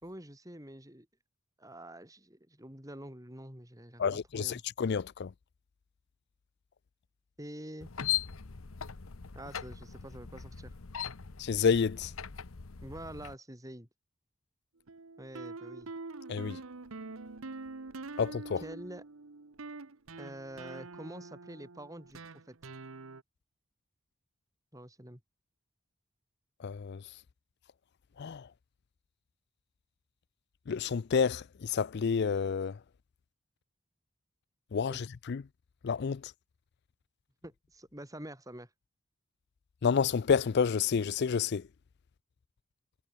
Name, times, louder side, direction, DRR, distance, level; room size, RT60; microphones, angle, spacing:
voice 1, 0.0-1.1 1.6-4.6 7.4-7.9 9.3-10.7 12.8-13.9 15.2-15.9 18.6-19.0 20.2-22.2 22.5-22.6 24.7-25.2 34.9-35.0 37.4-38.7, right 1 dB, 15° right, 6.5 m, -46 dB
voice 2, 4.0-5.3 11.4-12.1 16.3-16.6 18.2-18.6 26.6-27.0 28.2-28.5 30.7-32.8 34.7-35.4 35.8-36.3 39.8-41.6, left 6 dB, 55° left, 0.4 m, -29 dB
sound 1, 7.8-13.4, left 10 dB, 85° left, 1.0 m, -39 dB
sound 2, 14.9-23.2, right 3 dB, 80° right, 1.1 m, -45 dB
head